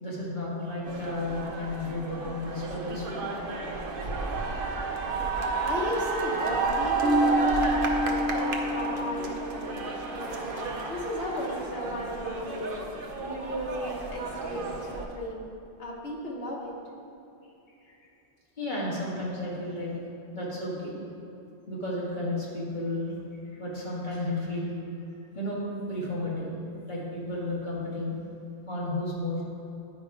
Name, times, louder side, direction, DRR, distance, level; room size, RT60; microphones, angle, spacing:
voice 1, 0.0-3.2 4.7-4.8 17.9-18.0 18.6-19.9 20.3-21.0 21.7-23.1 23.5-24.7 25.3-25.6 25.9-26.5 26.9-28.1 28.7-29.4, left 1 dB, 45° left, -6 dB, 2.0 m, -32 dB
sound 1, 0.8-15.1, right 4 dB, 60° right, 0.9 m, -31 dB
voice 2, 5.4-12.7 13.2-15.5 15.8-16.7, left 1 dB, 70° left, -3 dB, 1.6 m, -35 dB
Bass guitar, 7.0-10.5, left 1 dB, 90° right, 0.9 m, -29 dB
9.4 x 5.2 x 4.7 m, 2.7 s
omnidirectional pair, 1.1 m